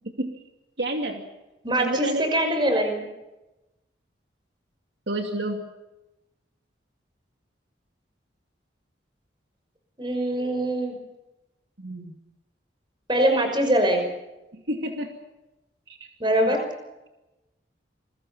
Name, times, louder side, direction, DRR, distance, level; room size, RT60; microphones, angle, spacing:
voice 1, 0.8-1.2 1.8-2.2 5.1-5.7 11.8-12.1 14.5-15.1 15.9-16.1 16.4-16.6, right 1 dB, 65° right, 4 dB, 2.6 m, -29 dB
voice 2, 1.6-3.0 10.0-10.9 13.1-14.1 16.2-16.6, right 1 dB, 25° right, 5 dB, 5.8 m, -23 dB
28.5 x 22.5 x 5.6 m, 0.98 s
head